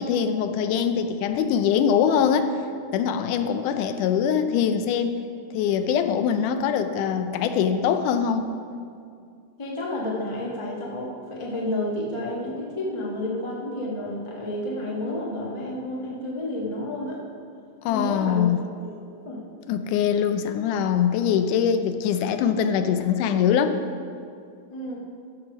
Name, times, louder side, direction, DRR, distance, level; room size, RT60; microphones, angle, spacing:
voice 1, 0.0-2.6 2.9-5.2 5.5-8.5 17.9-18.6 19.7-23.8, left 8 dB, 80° left, 9 dB, 2.0 m, -23 dB
voice 2, 9.6-17.2 17.9-18.5 18.8-19.0 19.2-19.4 24.7-25.0, left 1 dB, 45° left, -4 dB, 0.3 m, -30 dB
13.5 x 4.8 x 6.0 m, 2.4 s
omnidirectional pair, 3.7 m